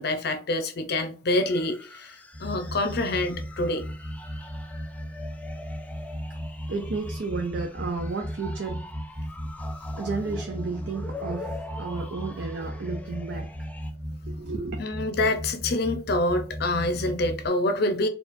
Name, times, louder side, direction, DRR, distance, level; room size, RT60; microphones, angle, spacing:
voice 1, 0.0-3.8 14.8-18.1, left 2 dB, 60° left, 0.6 m, -26 dB
sound 1, 1.4-13.9, left 2 dB, 10° left, 0.3 m, -44 dB
sound 2, 2.3-17.5, equal, 20° right, 1.5 m, -36 dB
voice 2, 6.7-8.8 10.0-13.7 14.3-14.8, right 4 dB, 65° right, 0.5 m, -32 dB
4.2 x 2.4 x 2.5 m
head